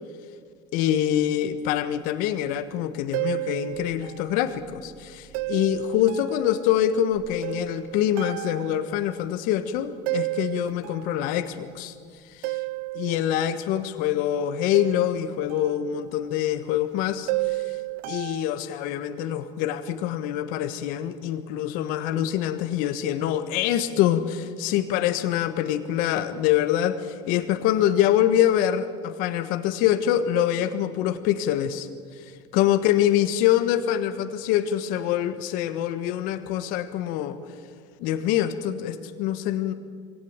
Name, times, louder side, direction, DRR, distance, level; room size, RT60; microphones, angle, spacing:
voice 1, 0.7-11.9 12.4-12.6 12.9-17.8 18.1-31.9 32.2-32.3 32.5-37.4 38.0-39.7, left 11 dB, 70° left, 10 dB, 1.4 m, -25 dB
sound 1, 3.1-4.3 4.6-6.6 7.1-9.2 10.1-11.3 12.4-13.3 14.7-15.8 17.3-18.4, right 21 dB, 65° right, 0.7 m, -32 dB
22.5 x 17.5 x 8.9 m, 2.1 s
supercardioid pair, 95°, 15 cm